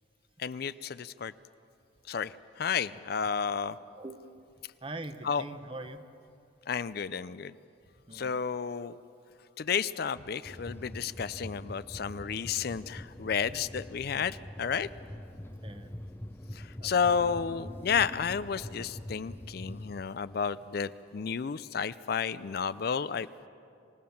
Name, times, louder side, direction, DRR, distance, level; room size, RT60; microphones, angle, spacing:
voice 1, 0.4-1.3 2.1-3.7 5.3-5.4 6.7-7.5 8.1-8.9 9.6-14.9 16.6-23.5, left 6 dB, 50° left, 15 dB, 0.4 m, -32 dB
voice 2, 4.8-6.0 8.1-8.4 15.6-15.9 16.8-17.0, right 2 dB, 25° right, 9 dB, 1.0 m, -42 dB
sound 1, 10.4-20.0, left 1 dB, 10° left, 0.6 m, -44 dB
27.0 x 17.5 x 7.1 m, 2.6 s
head